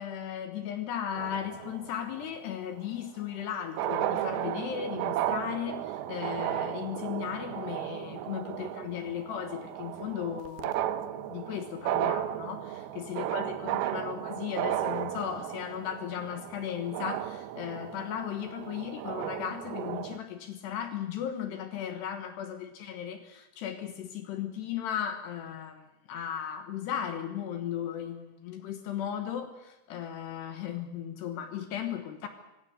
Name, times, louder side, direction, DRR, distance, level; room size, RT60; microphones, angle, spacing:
voice 1, 0.0-32.3, left 9 dB, 70° left, 8 dB, 3.0 m, -36 dB
sound 1, 1.2-2.2 3.4-3.5 3.7-20.2, right 12 dB, 85° right, 2.1 m, -34 dB
25.5 x 15.5 x 8.2 m, 0.99 s
omnidirectional pair, 5.9 m